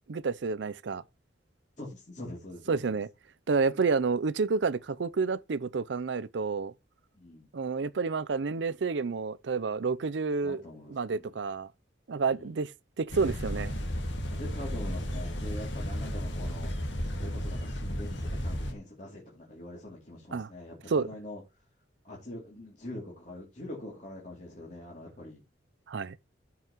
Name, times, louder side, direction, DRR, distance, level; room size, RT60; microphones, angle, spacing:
voice 1, 0.1-1.0 2.7-3.1 3.5-6.7 7.5-10.6 10.9-11.7 12.1-12.7 13.0-13.7 20.3-20.5 20.9-21.1 25.9-26.2, right 4 dB, 75° right, 0.5 m, -29 dB
voice 2, 1.8-3.0 7.1-7.5 10.4-11.3 12.3-12.6 14.3-16.7 17.1-21.4 22.0-25.4, left 1 dB, 40° left, 2.8 m, -44 dB
sound 1, 13.1-18.7, equal, 80° left, 2.1 m, -33 dB
14.5 x 5.6 x 3.0 m
head